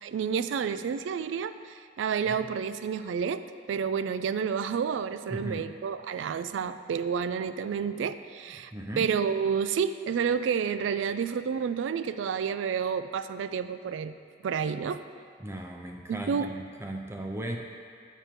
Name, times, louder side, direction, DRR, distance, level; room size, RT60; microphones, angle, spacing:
voice 1, 0.0-8.7 9.0-14.1 14.4-15.0 16.1-16.5, right 6 dB, 85° right, 12 dB, 0.3 m, -30 dB
voice 2, 5.3-5.7 8.7-9.1 15.4-17.6, right 1 dB, 15° right, 1 dB, 0.4 m, -37 dB
8.9 x 4.5 x 5.0 m, 2.2 s
head